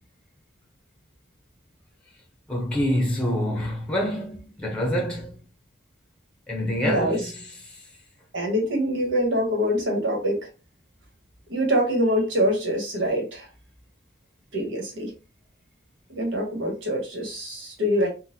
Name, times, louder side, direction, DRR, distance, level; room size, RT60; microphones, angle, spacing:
voice 1, 2.5-5.4 6.5-7.8, equal, 5° left, 0.7 m, -27 dB
voice 2, 6.8-7.2 8.3-10.4 11.5-13.5 14.5-15.1 16.1-18.1, equal, 90° right, 1.3 m, -24 dB
3.9 x 2.2 x 2.7 m
head